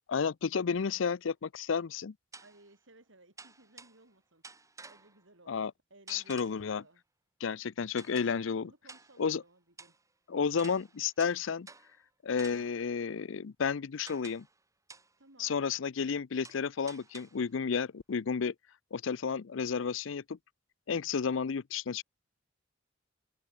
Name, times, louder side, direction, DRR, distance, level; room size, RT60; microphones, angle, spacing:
voice 1, 0.1-2.1 5.5-5.7 6.1-6.8 7.4-8.7 9.2-9.4 10.3-11.7 12.2-14.5 15.4-18.5 18.9-20.4 20.9-22.0, left 6 dB, 75° left, 0.5 m, -32 dB
sound 1, 0.9-1.0 2.3-2.7 3.4-4.1 4.4-5.3 6.1-6.7 8.0-8.5 8.9-9.3 9.8-10.0 10.6-12.0 12.4-12.9 14.1-14.6 14.9-15.2 16.4-17.5, right 4 dB, 15° right, 2.7 m, -52 dB
voice 2, 2.4-4.5 4.9-7.0 8.3-10.0 12.3-12.8 15.2-15.6, right 2 dB, 70° right, 5.4 m, -60 dB
head